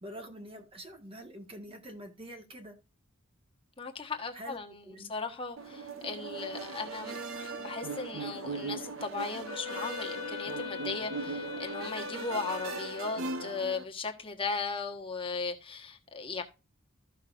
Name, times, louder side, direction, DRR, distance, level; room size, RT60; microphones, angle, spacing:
voice 1, 0.0-2.8 4.3-4.6 4.8-5.1, equal, 25° right, 1.4 m, -45 dB
voice 2, 3.8-16.4, left 4 dB, 25° left, 1.3 m, -37 dB
sound 1, 5.6-13.8, right 4 dB, 70° right, 0.9 m, -39 dB
Wind instrument woodwind instrument, 9.4-13.3, left 7 dB, 80° left, 1.1 m, -41 dB
14.0 x 5.6 x 2.5 m
head